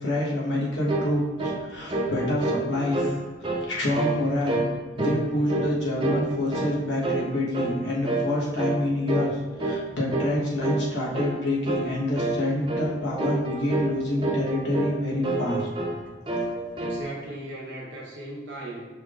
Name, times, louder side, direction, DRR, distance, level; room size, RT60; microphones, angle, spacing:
voice 1, 0.0-4.6 5.0-15.7 16.2-16.4, left 1 dB, 85° left, -4 dB, 1.1 m, -27 dB
sound 1, 0.9-1.1 1.4-1.6 1.9-3.1 3.4-3.7 3.9-4.2 4.5-4.7 5.0-5.7 6.0-6.8 7.0-7.3 7.5-7.8 8.0-8.3 8.6-8.8 9.1-9.3 9.6-9.8 10.1-10.3 10.6-10.9 11.1-11.3 11.7-11.9 12.2-12.4 12.7-12.9 13.2-13.9 14.2-15.0 15.2-16.0 16.3-17.0, right 2 dB, 30° right, 0.5 m, -28 dB
voice 2, 16.7-18.8, right 1 dB, 70° right, -4 dB, 1.1 m, -37 dB
5.7 x 3.5 x 2.4 m, 1.3 s
head